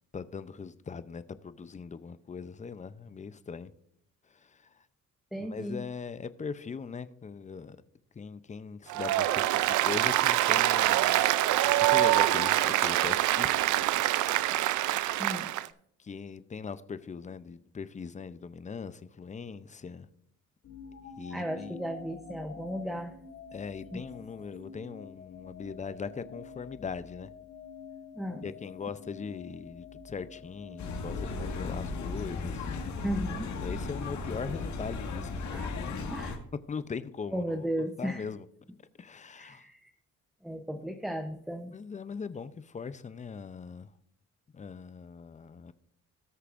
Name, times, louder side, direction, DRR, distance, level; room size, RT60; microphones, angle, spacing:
voice 1, 0.1-3.7 4.3-4.7 5.5-7.8 8.2-11.2 11.8-13.8 16.0-20.1 21.2-21.8 23.5-27.3 28.4-32.8 33.6-36.1 36.7-38.5 39.0-39.7 41.7-43.9 44.5-45.7, left 5 dB, 25° left, 0.6 m, -40 dB
voice 2, 5.3-5.8 15.2-15.5 21.3-23.1 23.9-24.0 28.1-28.5 33.0-33.5 35.5-35.7 36.1-36.4 37.3-38.3 39.4-39.9 40.4-41.8, equal, ahead, 0.8 m, -35 dB
Applause, 8.9-15.7, right 15 dB, 80° right, 0.5 m, -25 dB
sound 1, 20.6-32.7, left 6 dB, 50° left, 2.2 m, -48 dB
sound 2, 30.8-36.4, left 3 dB, 70° left, 1.8 m, -35 dB
18.5 x 6.6 x 2.6 m
cardioid pair, 90°, 30 cm